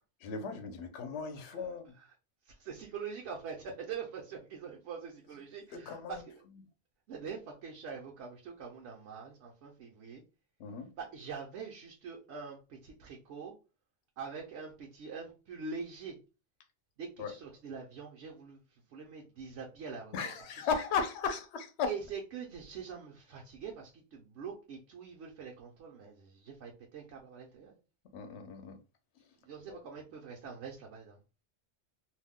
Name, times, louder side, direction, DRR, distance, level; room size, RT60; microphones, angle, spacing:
voice 1, 0.2-1.9 5.7-6.2 10.6-10.9 17.2-17.3 20.1-21.9 28.1-28.8 29.7-29.8, left 5 dB, 70° left, 0.9 m, -36 dB
voice 2, 1.5-2.1 2.4-6.4 7.1-10.2 11.0-13.5 14.2-16.2 17.0-20.7 21.9-27.8 29.4-31.2, right 5 dB, 75° right, 0.9 m, -44 dB
2.5 x 2.1 x 3.5 m
omnidirectional pair, 1.2 m